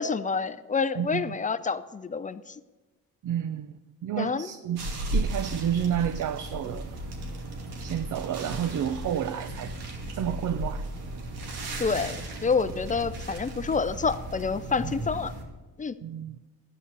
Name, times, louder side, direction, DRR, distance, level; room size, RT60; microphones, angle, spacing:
voice 1, 0.0-2.6 4.2-4.5 11.8-12.2 12.4-15.3 15.8-16.0, left 5 dB, 20° left, 13 dB, 0.5 m, -28 dB
voice 2, 1.0-1.4 3.2-4.8 5.1-7.0 7.8-9.8 10.1-10.9 14.8-14.9 16.0-16.4, right 9 dB, 55° right, 11 dB, 0.6 m, -30 dB
sound 1, 4.8-15.4, right 1 dB, 85° right, 2.6 m, -35 dB
13.0 x 10.0 x 6.7 m, 1.2 s
cardioid pair, 120°, 37 cm